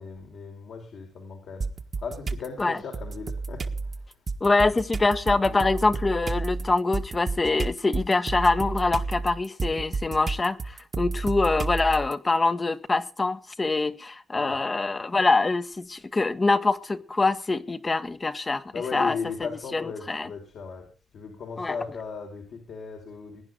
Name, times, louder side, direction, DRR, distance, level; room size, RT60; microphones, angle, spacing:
voice 1, 0.0-1.7 2.0-3.6 5.4-5.7 14.3-14.6 18.7-20.8 21.1-23.4, left 5 dB, 70° left, 4.9 m, -37 dB
sound 1, 1.6-2.5 2.9-12.1, right 4 dB, 45° right, 1.5 m, -31 dB
voice 2, 4.4-18.6 18.9-20.3 21.6-21.7, left 3 dB, 30° left, 1.3 m, -24 dB
21.5 x 10.0 x 3.8 m
cardioid pair, 75°, 0 cm